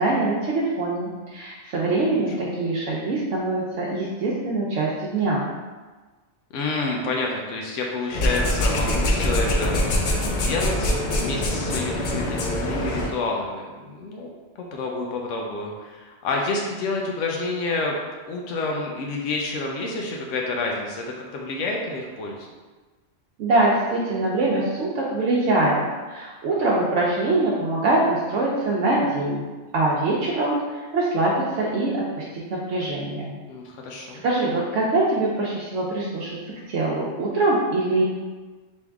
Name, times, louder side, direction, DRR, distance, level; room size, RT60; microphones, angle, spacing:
voice 1, 0.0-5.4 23.4-25.8 26.1-29.4 29.7-33.4 34.2-36.3 36.7-38.0, right 2 dB, 80° right, -5 dB, 1.0 m, -23 dB
voice 2, 6.5-9.8 10.4-14.3 14.6-18.0 18.3-21.1 21.3-22.5 33.5-34.2, left 3 dB, 90° left, -1 dB, 1.0 m, -29 dB
sound 1, 8.1-13.1, left 1 dB, 55° left, 0.6 m, -24 dB
3.5 x 3.1 x 3.4 m, 1.3 s
omnidirectional pair, 1.2 m